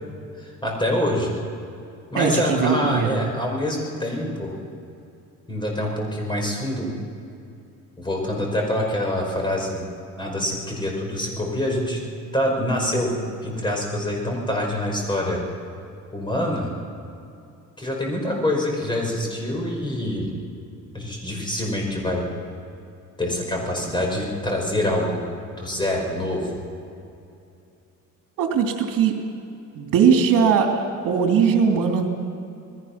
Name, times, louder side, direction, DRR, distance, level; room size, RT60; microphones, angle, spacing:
voice 1, 0.4-1.3 2.1-4.5 5.5-6.9 8.0-9.9 10.2-12.1 12.3-15.4 16.1-16.7 17.8-20.3 20.9-22.3 23.2-25.2 25.6-26.6, left 1 dB, 15° left, 0 dB, 5.1 m, -25 dB
voice 2, 2.2-3.3 28.4-29.2 29.7-32.1, right 6 dB, 75° right, 2 dB, 3.0 m, -20 dB
28.0 x 20.0 x 5.9 m, 2.6 s
cardioid pair, 145°, 33 cm